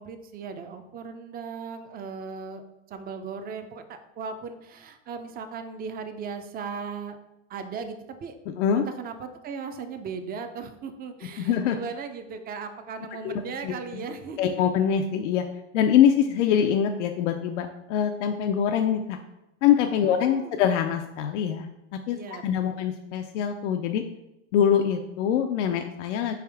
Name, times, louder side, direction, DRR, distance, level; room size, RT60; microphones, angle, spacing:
voice 1, 0.0-2.6 2.9-7.2 7.5-8.3 8.8-14.5 20.0-20.6 22.1-22.8, right 5 dB, 25° right, 8 dB, 0.5 m, -37 dB
voice 2, 8.5-8.8 11.4-11.8 13.2-14.0 14.4-15.4 15.7-19.2 19.6-21.7 22.1-22.2 22.4-24.0 24.5-26.3, left 9 dB, 80° left, 5 dB, 0.5 m, -24 dB
4.5 x 3.5 x 3.4 m, 0.89 s
supercardioid pair, 110°, 36 cm